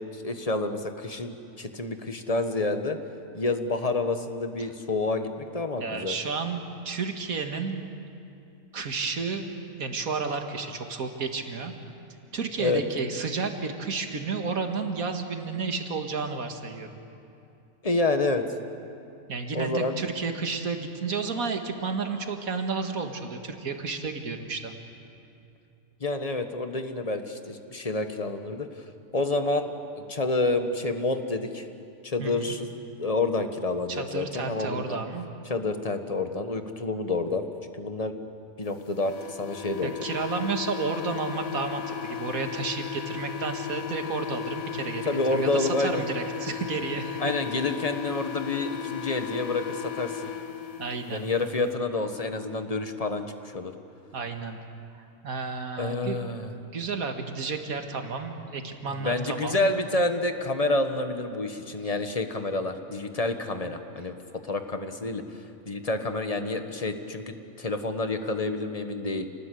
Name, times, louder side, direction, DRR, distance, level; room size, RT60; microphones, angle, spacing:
voice 1, 0.0-3.0 3.3-6.2 12.6-12.8 17.8-18.4 19.5-20.0 26.0-28.7 29.1-31.7 32.0-32.7 33.0-35.0 35.5-37.5 37.7-38.1 38.6-39.9 45.1-46.0 47.2-50.3 51.1-53.7 55.8-56.5 59.0-64.1 64.4-65.2 65.6-69.3, left 2 dB, 30° left, 7 dB, 1.3 m, -28 dB
voice 2, 5.8-7.8 8.7-9.5 9.8-11.7 12.3-16.9 19.3-24.7 32.2-32.5 33.9-35.3 39.8-47.2 50.8-51.3 54.1-54.6 55.0-56.2 56.7-59.7 61.8-61.9, right 4 dB, 80° right, 5 dB, 2.2 m, -32 dB
sound 1, 39.0-51.1, left 9 dB, 80° left, 1.4 m, -36 dB
28.0 x 19.0 x 8.4 m, 2.7 s
omnidirectional pair, 1.4 m